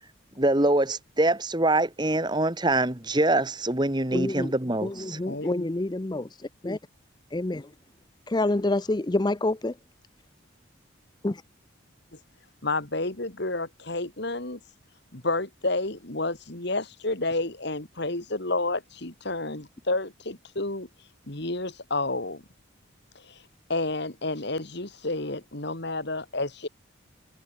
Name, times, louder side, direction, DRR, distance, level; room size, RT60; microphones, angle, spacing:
voice 1, 0.4-5.2, right 2 dB, 20° right, 1.7 m, -24 dB
voice 2, 4.1-4.5 4.8-6.8 7.3-7.7 8.3-9.7 11.2-11.4, left 2 dB, 20° left, 0.5 m, -27 dB
voice 3, 5.3-5.7 12.6-14.6 15.1-20.9 21.3-22.4 23.3-23.4 23.7-26.7, left 2 dB, 55° left, 2.6 m, -30 dB
head